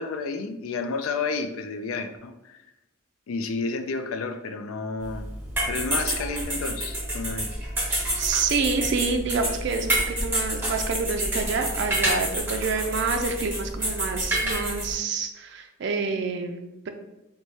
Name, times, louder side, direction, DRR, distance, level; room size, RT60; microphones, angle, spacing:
voice 1, 0.0-2.6 3.3-5.3 5.7-7.5, left 4 dB, 80° left, 7 dB, 0.4 m, -31 dB
sound 1, 5.0-14.9, right 1 dB, 10° right, 1.1 m, -28 dB
voice 2, 8.2-16.9, right 4 dB, 55° right, 5 dB, 0.3 m, -28 dB
3.1 x 2.2 x 4.0 m, 0.96 s
head